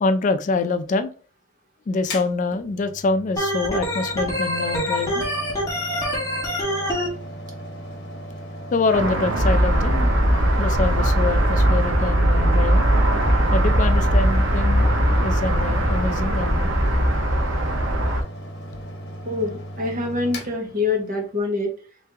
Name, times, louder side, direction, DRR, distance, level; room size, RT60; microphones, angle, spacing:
voice 1, 0.0-1.1 1.9-5.2 8.7-10.1 10.6-12.9 13.5-16.7, left 3 dB, 40° left, 10 dB, 0.3 m, -25 dB
Mechanical fan, 2.0-21.4, equal, 60° left, 1.1 m, -37 dB
Organ, 3.4-7.1, equal, 15° left, 1.1 m, -25 dB
sound 1, 8.9-18.2, right 1 dB, 80° right, 1.0 m, -19 dB
voice 2, 19.2-21.7, left 3 dB, 45° right, 2 dB, 1.1 m, -25 dB
3.3 x 3.1 x 3.4 m, 0.37 s
head